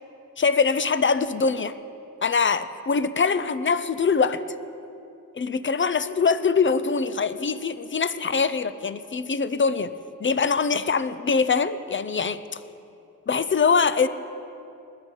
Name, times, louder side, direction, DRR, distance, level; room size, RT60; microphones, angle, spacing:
voice 1, 0.4-1.7 2.2-4.4 5.3-9.9 10.2-12.4 13.3-14.1, left 5 dB, 35° left, 13 dB, 0.6 m, -23 dB
21.0 x 9.8 x 3.9 m, 2.7 s
cardioid pair, 55°, 35 cm